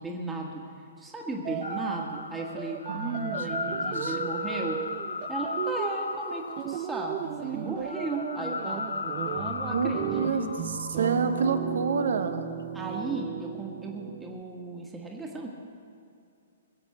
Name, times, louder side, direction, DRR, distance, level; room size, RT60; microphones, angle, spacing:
voice 1, 0.0-4.8 5.3-10.5 12.7-15.5, right 2 dB, 10° right, -1 dB, 1.7 m, -36 dB
sound 1, 1.4-14.4, right 11 dB, 35° right, 0.6 m, -36 dB
sound 2, 1.6-12.2 12.7-13.2, left 4 dB, 75° left, 0.6 m, -36 dB
voice 2, 2.9-4.2 9.7-12.5, right 5 dB, 60° right, 9 dB, 1.2 m, -29 dB
21.0 x 7.9 x 8.2 m, 2.5 s
figure-of-eight pair, 115°, 0 cm